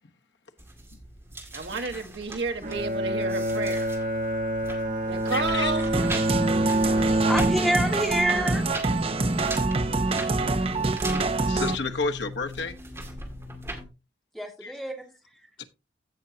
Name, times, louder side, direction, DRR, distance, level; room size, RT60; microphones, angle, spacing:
sound 1, 0.6-13.8, right 1 dB, 15° right, 2.0 m, -40 dB
voice 1, 1.5-3.9 5.0-5.9, right 3 dB, 75° right, 1.4 m, -31 dB
Bowed string instrument, 2.6-8.1, right 1 dB, 50° right, 1.5 m, -26 dB
voice 2, 5.3-5.8 11.4-12.8 14.6-14.7 15.6-15.7, left 4 dB, 80° left, 1.1 m, -31 dB
sound 2, 5.9-11.8, right 3 dB, 30° right, 0.7 m, -26 dB
voice 3, 7.3-8.6 14.3-14.9 15.4-15.5, equal, ahead, 2.2 m, -26 dB
16.0 x 6.0 x 2.8 m
head